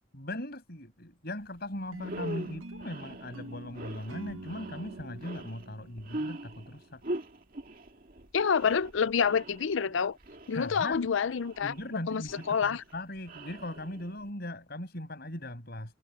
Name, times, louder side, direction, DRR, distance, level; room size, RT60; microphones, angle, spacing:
voice 1, 0.1-7.0 10.5-11.0 11.6-16.0, left 1 dB, 50° left, 6.4 m, -39 dB
sound 1, 1.4-1.6 1.9-14.3, right 1 dB, 45° right, 2.1 m, -43 dB
sound 2, 1.9-7.0, right 2 dB, 80° right, 1.3 m, -46 dB
voice 2, 8.3-10.2 10.5-11.7 12.1-12.2 12.5-12.8, left 6 dB, 70° left, 0.5 m, -27 dB
head